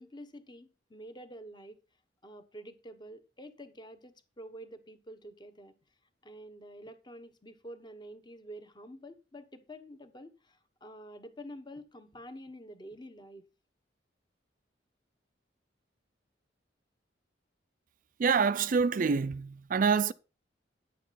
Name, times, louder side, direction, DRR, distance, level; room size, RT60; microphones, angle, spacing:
voice 1, 0.0-1.8 2.2-5.7 6.2-13.4, equal, 25° left, 1.1 m, -48 dB
voice 2, 18.2-20.1, right 5 dB, 45° right, 0.4 m, -26 dB
10.0 x 8.0 x 4.1 m
head